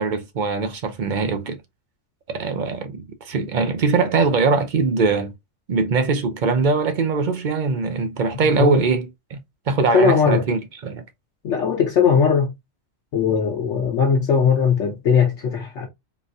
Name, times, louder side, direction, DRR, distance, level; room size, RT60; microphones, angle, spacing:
voice 1, 0.0-1.6 2.3-5.3 5.7-9.4 9.7-11.0, right 4 dB, 55° right, 0.6 m, -22 dB
voice 2, 9.9-10.4 11.4-12.5 13.1-15.9, left 6 dB, 70° left, 1.0 m, -19 dB
3.8 x 2.5 x 2.5 m
omnidirectional pair, 1.3 m